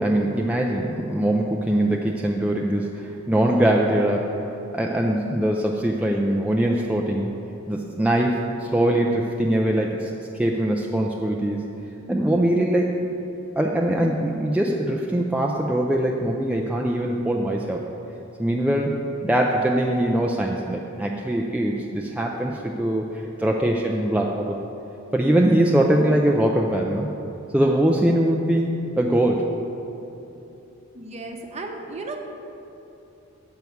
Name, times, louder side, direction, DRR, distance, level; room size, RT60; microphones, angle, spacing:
voice 1, 0.0-4.3 4.7-7.3 7.7-10.1 10.4-11.6 12.1-13.0 13.6-17.8 18.4-18.9 19.2-24.6 25.1-27.1 27.5-29.5, right 1 dB, 5° right, -1 dB, 0.4 m, -22 dB
voice 2, 30.9-32.2, right 3 dB, 30° right, 2 dB, 0.8 m, -34 dB
9.2 x 4.6 x 7.0 m, 2.9 s
head